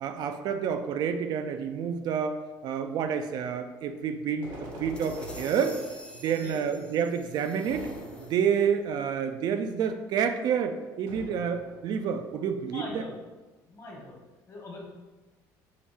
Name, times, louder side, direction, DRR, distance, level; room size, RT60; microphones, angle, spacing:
voice 1, 0.0-5.8 6.2-7.9 8.3-13.0, right 7 dB, 55° right, 7 dB, 0.3 m, -29 dB
sound 1, 4.4-6.4 7.6-8.8 11.1-12.1, right 1 dB, 85° right, 1.5 m, -43 dB
sound 2, 4.7-8.7, left 1 dB, 10° left, 0.6 m, -49 dB
voice 2, 6.2-6.6 12.6-13.1 13.6-14.2 14.5-14.9, left 1 dB, 35° left, -2 dB, 1.3 m, -41 dB
5.5 x 2.0 x 3.4 m, 1.2 s
supercardioid pair, 95°, 8 cm